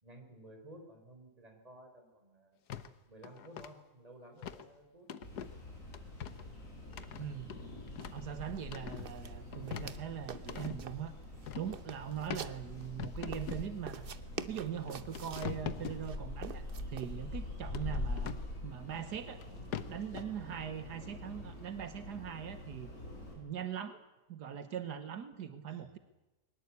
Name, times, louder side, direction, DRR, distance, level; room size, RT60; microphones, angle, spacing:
voice 1, 0.0-2.6 3.1-5.1, right 1 dB, 20° right, 5 dB, 4.0 m, -54 dB
sound 1, 2.7-2.9 3.2-3.7 4.4-4.7 5.1-5.5 5.9-6.5 6.9-8.3 8.6-9.1 9.5-10.8 11.5-11.8 12.3-12.5 13.0-13.7 14.4-14.5 14.9-16.0 17.7-18.5 19.4-19.5 19.7-20.2, left 8 dB, 80° left, 1.6 m, -42 dB
sound 2, 5.2-23.3, left 2 dB, 50° left, 7.2 m, -45 dB
voice 2, 7.2-7.6 8.1-11.1 11.5-14.1 14.5-18.4 18.6-19.4 19.9-22.9 23.4-24.0 24.3-26.0, right 9 dB, 85° right, 10 dB, 1.8 m, -41 dB
sound 3, 8.0-8.1 8.4-8.6 9.0-10.0 10.3-11.1 11.4-12.9 13.3-15.5 16.0-17.1, right 7 dB, 45° right, 0.9 m, -46 dB
22.0 x 19.5 x 8.4 m, 1.0 s
omnidirectional pair, 1.7 m